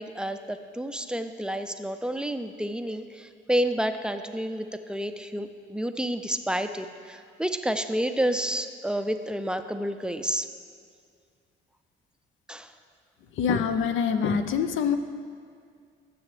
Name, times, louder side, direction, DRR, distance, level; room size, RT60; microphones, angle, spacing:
voice 1, 0.0-10.5 12.5-12.7, right 1 dB, 5° right, 8 dB, 0.4 m, -30 dB
voice 2, 13.4-15.0, left 6 dB, 75° left, 9 dB, 0.6 m, -25 dB
13.0 x 7.0 x 3.2 m, 2.2 s
cardioid pair, 90°, 20 cm